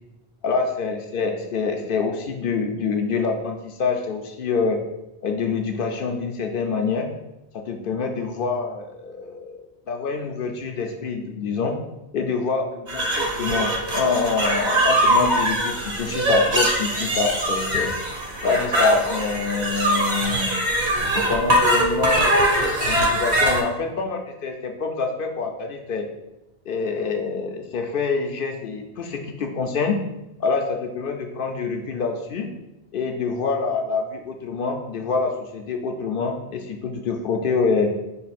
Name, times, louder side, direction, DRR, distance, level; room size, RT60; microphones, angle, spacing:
voice 1, 0.4-4.8 5.2-7.1 7.5-11.8 12.1-17.9 18.4-20.6 21.0-26.0 26.7-30.0 30.4-32.5 32.9-37.9, left 4 dB, 65° left, 3 dB, 0.7 m, -26 dB
sound 1, 12.9-23.6, right 1 dB, 45° right, 0.8 m, -22 dB
5.4 x 2.3 x 4.1 m, 0.94 s
omnidirectional pair, 1.1 m